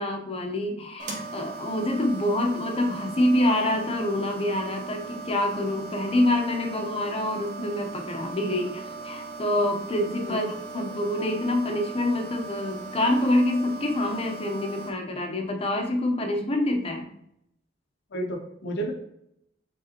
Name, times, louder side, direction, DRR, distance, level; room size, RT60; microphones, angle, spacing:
voice 1, 0.0-10.4 10.7-17.1, left 1 dB, 30° left, 3 dB, 0.7 m, -26 dB
sound 1, 1.0-14.9, right 4 dB, 40° right, 1.0 m, -39 dB
voice 2, 10.3-10.8 18.1-18.9, right 1 dB, 60° left, 1 dB, 0.7 m, -32 dB
5.0 x 3.4 x 2.8 m, 0.76 s
head